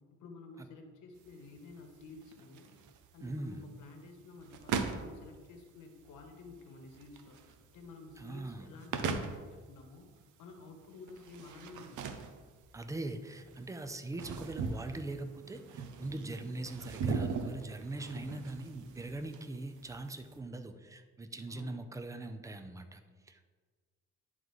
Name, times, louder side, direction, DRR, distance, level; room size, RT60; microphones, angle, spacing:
voice 1, 0.2-2.8 3.1-10.1 10.4-12.1 16.4-16.6 18.0-18.3 21.5-21.9, left 3 dB, 90° left, 4 dB, 1.1 m, -52 dB
sound 1, 1.2-20.3, right 5 dB, 80° right, 0.7 m, -41 dB
voice 2, 3.2-3.6 8.2-8.7 12.7-23.6, right 2 dB, 10° right, 8 dB, 0.5 m, -41 dB
11.0 x 4.0 x 3.1 m, 1.5 s
cardioid pair, 90°, 30 cm